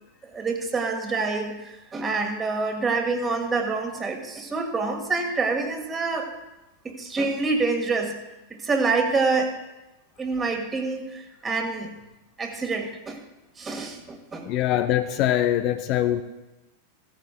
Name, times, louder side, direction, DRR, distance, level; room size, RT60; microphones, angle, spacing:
voice 1, 0.2-6.3 6.8-8.2 8.5-9.6 10.2-11.9 12.4-13.2 13.6-14.5, right 4 dB, 20° right, 4 dB, 1.7 m, -27 dB
voice 2, 14.4-16.2, left 12 dB, 40° left, 8 dB, 0.5 m, -23 dB
16.5 x 14.0 x 2.2 m, 1.0 s
figure-of-eight pair, 90°, 0 cm